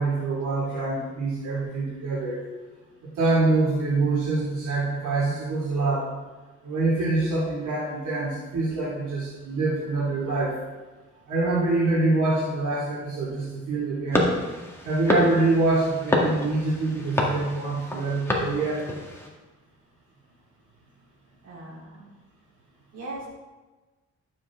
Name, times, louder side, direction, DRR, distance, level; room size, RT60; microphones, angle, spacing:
voice 1, 0.0-2.4 3.2-6.1 6.6-10.6 11.3-14.3 14.8-18.8, right 3 dB, 80° right, -7 dB, 2.6 m, -25 dB
sound 1, 14.1-19.3, left 1 dB, 10° left, 1.7 m, -27 dB
voice 2, 21.4-22.1 22.9-23.3, right 2 dB, 55° right, -5 dB, 3.3 m, -39 dB
11.5 x 7.4 x 3.7 m, 1.2 s
cardioid pair, 115°, 30 cm